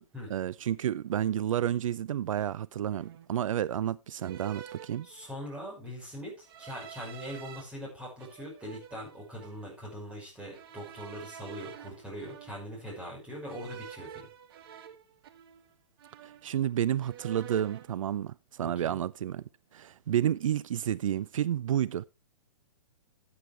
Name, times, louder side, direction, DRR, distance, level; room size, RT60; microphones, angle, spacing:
voice 1, 0.3-5.1 16.2-19.4 19.7-22.0, right 10 dB, 75° right, 0.4 m, -30 dB
sound 1, 1.8-2.0 2.9-3.4 4.2-5.6 6.4-7.6 8.2-9.7 10.5-12.9 13.5-15.7 16.0-16.7 17.0-17.9, right 10 dB, 45° right, 1.4 m, -48 dB
voice 2, 5.0-14.3 18.6-19.0, equal, 5° right, 5.6 m, -42 dB
13.5 x 8.6 x 3.3 m
hypercardioid pair, 155°, 17 cm